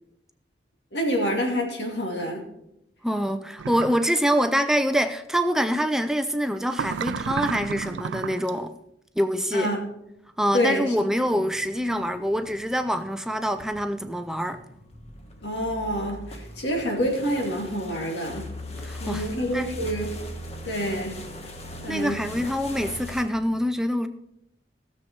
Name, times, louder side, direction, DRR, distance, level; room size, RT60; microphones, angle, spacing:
voice 1, 0.9-2.4 9.5-9.8 10.5-10.9 15.4-18.5 19.0-20.1 20.6-21.2 21.8-22.2, equal, 75° left, 2.5 m, -27 dB
voice 2, 3.0-8.7 9.2-9.7 10.4-14.6 18.8-19.3 19.5-19.7 21.9-24.1, equal, 5° right, 0.4 m, -25 dB
sound 1, 3.6-4.1 6.7-8.5, right 6 dB, 90° right, 0.4 m, -31 dB
sound 2, 10.9-23.2, left 1 dB, 35° left, 1.4 m, -40 dB
16.0 x 7.1 x 4.6 m
head